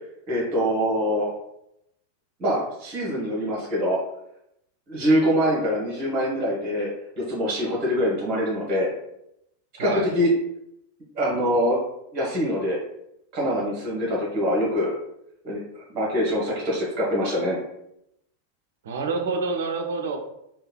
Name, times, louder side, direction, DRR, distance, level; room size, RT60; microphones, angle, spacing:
voice 1, 0.3-1.3 2.4-4.0 4.9-6.9 7.2-8.9 9.8-10.3 11.1-11.8 12.1-12.8 13.3-14.9 15.4-17.6, equal, 35° right, -4 dB, 0.9 m, -24 dB
voice 2, 18.8-20.2, right 4 dB, 60° right, 4 dB, 0.4 m, -27 dB
3.3 x 2.1 x 2.2 m, 0.80 s
figure-of-eight pair, 90°, 0 cm